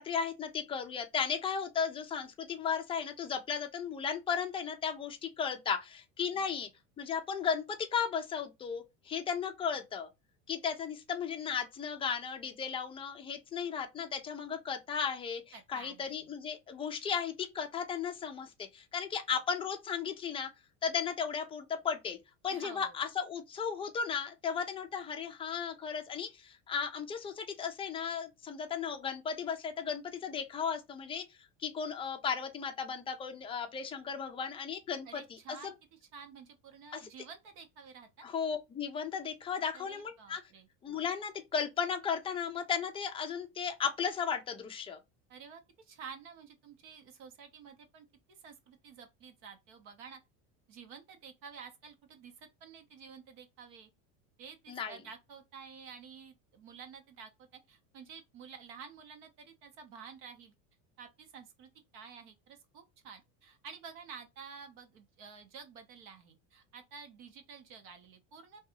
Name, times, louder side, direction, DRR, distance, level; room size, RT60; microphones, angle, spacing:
voice 1, 0.0-6.7 7.0-10.1 10.5-20.5 20.8-22.2 22.4-35.2 35.5-35.7 36.9-37.0 38.2-40.4 40.8-45.0 54.7-55.0, left 6 dB, 15° left, 0.3 m, -35 dB
voice 2, 15.5-16.3 22.5-23.0 35.1-35.7 36.1-38.3 39.7-40.7 45.3-50.2 50.7-53.9 54.4-60.5 61.0-68.6, right 6 dB, 65° right, 0.9 m, -51 dB
2.6 x 2.3 x 2.8 m
supercardioid pair, 125°, 42 cm